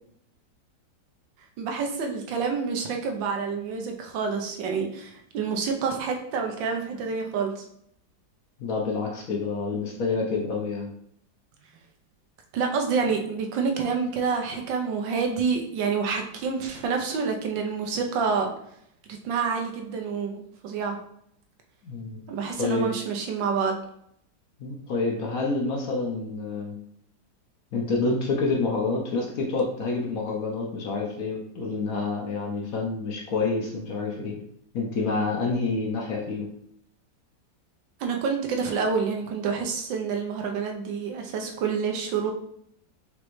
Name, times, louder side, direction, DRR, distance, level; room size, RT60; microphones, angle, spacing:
voice 1, 1.6-7.6 12.5-18.6 19.1-21.0 22.3-23.8 38.0-42.3, right 5 dB, 90° right, 3 dB, 1.5 m, -28 dB
voice 2, 8.6-10.9 21.8-22.2 22.6-22.9 24.6-26.8 27.7-34.3 34.7-36.5, left 3 dB, 60° left, -1 dB, 1.1 m, -28 dB
5.1 x 3.1 x 3.1 m, 0.70 s
omnidirectional pair, 2.0 m